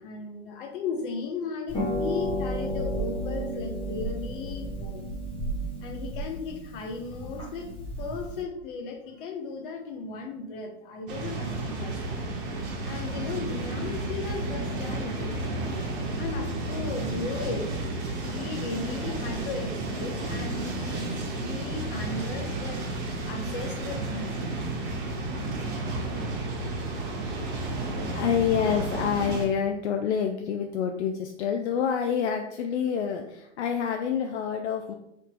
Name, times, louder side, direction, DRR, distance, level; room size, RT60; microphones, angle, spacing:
voice 1, 0.0-5.0 5.8-7.7 8.0-12.3 12.9-15.5 16.2-24.4, left 4 dB, 50° left, 4 dB, 0.9 m, -36 dB
Harp, 1.7-8.4, equal, 15° left, 0.8 m, -32 dB
sound 1, 11.1-29.4, right 2 dB, 50° right, 1.2 m, -32 dB
voice 2, 28.2-34.9, left 7 dB, 70° left, 5 dB, 0.5 m, -27 dB
3.3 x 2.9 x 4.5 m, 0.83 s
hypercardioid pair, 120°, 35 cm